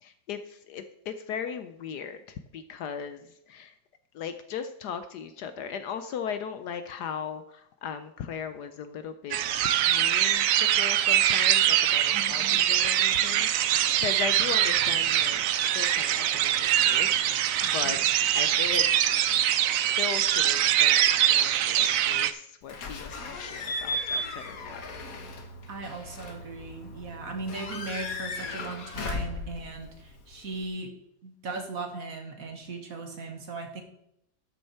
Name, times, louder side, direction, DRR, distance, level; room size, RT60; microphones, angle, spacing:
voice 1, 0.0-0.4 0.7-2.2 2.5-3.2 3.5-3.7 4.1-7.4 7.8-15.4 15.7-17.4 17.7-18.0 18.4-24.8, left 7 dB, 70° left, 10 dB, 1.1 m, -38 dB
sound 1, 9.3-22.3, right 11 dB, 90° right, 0.7 m, -23 dB
voice 2, 12.1-12.6 17.8-18.0 25.7-30.9 31.2-33.8, right 3 dB, 50° right, 4 dB, 1.8 m, -38 dB
Slam / Squeak / Alarm, 22.7-30.7, left 2 dB, 50° left, 1.6 m, -36 dB
12.5 x 6.6 x 4.3 m, 0.77 s
omnidirectional pair, 2.0 m